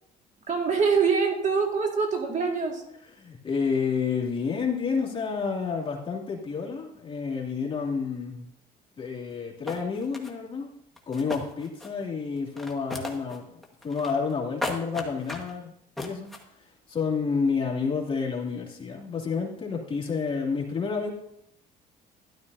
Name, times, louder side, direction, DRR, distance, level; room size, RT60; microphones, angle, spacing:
voice 1, 0.5-2.8, right 5 dB, 45° right, 2 dB, 2.0 m, -24 dB
voice 2, 3.2-8.5 9.0-10.7 11.1-16.3 16.9-21.1, left 5 dB, 30° left, -2 dB, 2.4 m, -30 dB
sound 1, 9.3-9.4 9.7-10.3 11.0-12.1 12.4-13.4 13.6-14.3 14.6-15.5 16.0-16.4, left 2 dB, ahead, 1.5 m, -35 dB
12.5 x 11.5 x 2.7 m, 0.76 s
cardioid pair, 110°, 17 cm